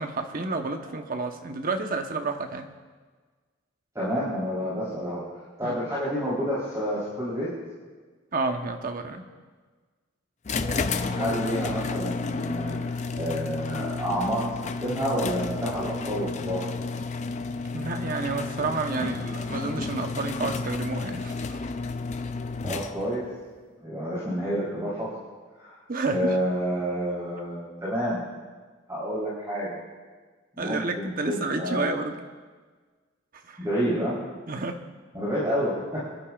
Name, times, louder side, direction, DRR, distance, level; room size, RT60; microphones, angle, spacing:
voice 1, 0.0-2.7 5.6-5.7 8.3-9.3 17.7-21.7 25.9-26.3 30.6-32.2 33.4-33.6 34.5-34.8, right 3 dB, 45° right, 5 dB, 1.0 m, -30 dB
voice 2, 3.9-5.2 5.6-7.5 10.6-14.4 14.8-16.6 22.6-23.2 23.8-25.2 25.6-25.7 26.1-28.2 28.9-29.8 30.6-31.9 33.6-34.2 35.1-36.0, equal, 15° right, -10 dB, 3.8 m, -29 dB
sound 1, 10.4-23.2, left 3 dB, 35° left, 0.5 m, -31 dB
25.0 x 12.0 x 2.4 m, 1.4 s
head